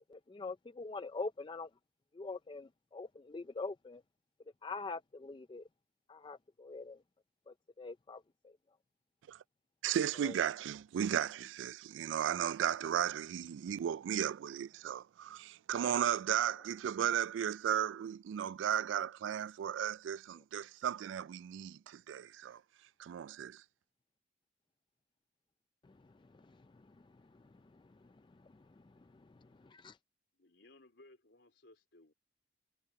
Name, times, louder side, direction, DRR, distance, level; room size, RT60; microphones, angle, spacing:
voice 1, 0.1-1.7 2.1-4.0 4.6-5.7 6.1-7.0 7.5-8.5 10.2-10.4 25.8-30.0, left 3 dB, 25° left, 0.4 m, -45 dB
voice 2, 9.8-22.6 23.0-23.6, right 9 dB, 85° right, 0.3 m, -35 dB
voice 3, 30.3-32.1, left 2 dB, 70° left, 4.0 m, -61 dB
head